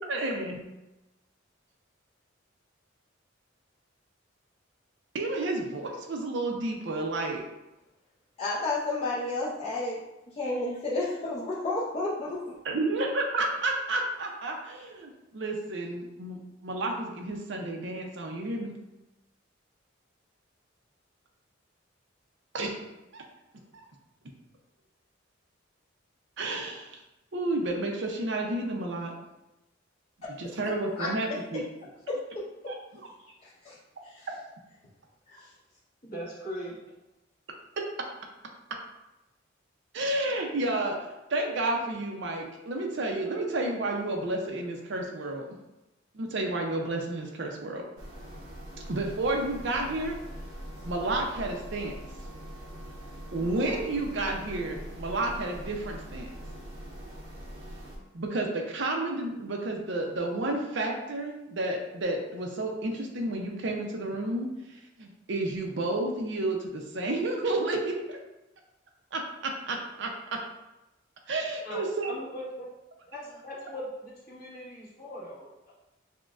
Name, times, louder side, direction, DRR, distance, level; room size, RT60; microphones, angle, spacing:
voice 1, 0.1-0.7 5.1-7.4 12.6-18.8 22.5-23.2 23.7-23.8 26.4-27.0 27.3-29.1 30.4-31.6 32.7-32.8 37.8-37.9 39.9-45.5 46.1-47.8 48.9-50.2 50.8-51.9 53.3-56.3 58.1-68.2 69.1-70.4 71.3-72.2, right 2 dB, 65° right, 2 dB, 0.6 m, -31 dB
voice 2, 8.4-10.0 10.4-12.6 30.2-30.3 31.0-31.1 33.6-33.7 34.0-34.3 35.3-35.5, left 2 dB, 30° left, -9 dB, 0.6 m, -31 dB
voice 3, 36.0-36.9 71.6-71.8 72.1-72.7 73.1-75.7, equal, 50° left, -8 dB, 1.4 m, -40 dB
sound 1, 48.0-58.0, equal, 90° right, 0.9 m, -42 dB
6.0 x 2.2 x 2.4 m, 0.97 s
head